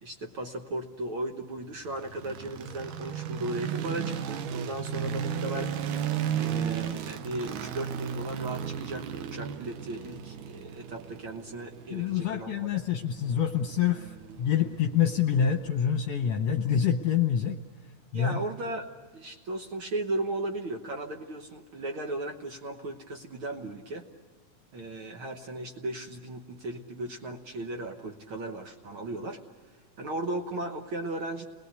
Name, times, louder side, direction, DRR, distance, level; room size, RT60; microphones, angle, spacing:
voice 1, 0.0-5.7 6.3-12.8 18.1-24.1 24.7-29.4 29.7-31.5, right 2 dB, 55° right, 3 dB, 1.6 m, -36 dB
sound 1, 1.8-16.0, right 8 dB, 80° right, 2.5 m, -35 dB
voice 2, 11.9-17.6 18.1-18.4, left 8 dB, 70° left, 4 dB, 1.9 m, -26 dB
29.5 x 21.0 x 8.2 m, 1.4 s
omnidirectional pair, 3.6 m